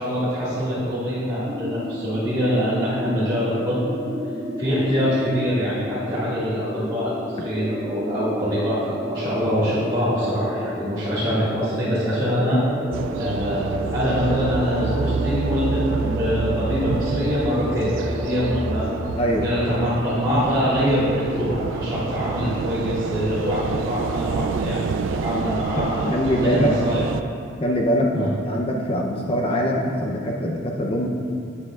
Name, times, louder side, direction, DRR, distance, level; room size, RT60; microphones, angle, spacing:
voice 1, 0.0-3.8 4.6-12.6 13.2-18.9 19.3-27.0 28.1-28.3, equal, 25° right, -14 dB, 1.9 m, -24 dB
sound 1, 1.4-19.0, equal, 40° right, 1.5 m, -31 dB
sound 2, 12.9-27.2, right 5 dB, 90° right, 0.3 m, -28 dB
voice 2, 25.8-26.7 27.6-31.1, equal, 30° left, 0 dB, 0.6 m, -23 dB
11.5 x 8.6 x 2.4 m, 2.4 s
head